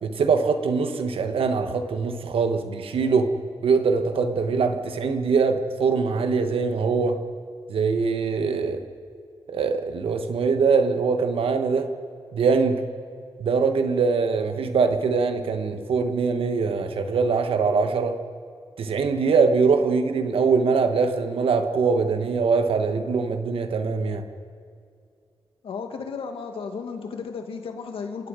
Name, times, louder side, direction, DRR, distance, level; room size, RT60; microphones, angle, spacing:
voice 1, 0.0-3.3 3.6-7.2 7.7-8.9 9.5-11.9 12.3-12.8 13.4-18.2 18.8-24.3, right 5 dB, 85° right, 7 dB, 1.4 m, -23 dB
voice 2, 25.6-28.3, left 5 dB, 90° left, 5 dB, 2.1 m, -34 dB
29.0 x 18.0 x 5.1 m, 2.3 s
wide cardioid pair, 90°, 9 cm